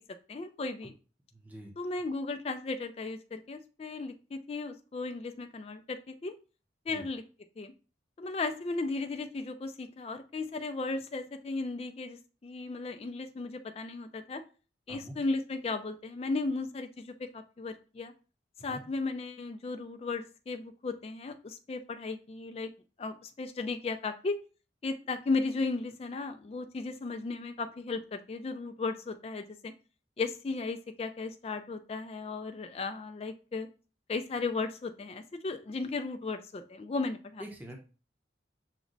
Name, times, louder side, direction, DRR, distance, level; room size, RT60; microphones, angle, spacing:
voice 1, 0.3-0.9 1.8-6.4 6.9-7.2 7.6-7.7 8.2-14.4 14.9-18.1 18.6-22.7 23.0-24.4 24.8-29.7 30.2-33.7 34.1-37.4, left 3 dB, 30° left, 7 dB, 0.3 m, -35 dB
voice 2, 1.3-1.7 6.9-7.1 14.9-15.1 18.7-18.8 37.4-37.8, equal, 10° right, 1 dB, 0.7 m, -45 dB
5.9 x 2.1 x 3.9 m, 0.35 s
head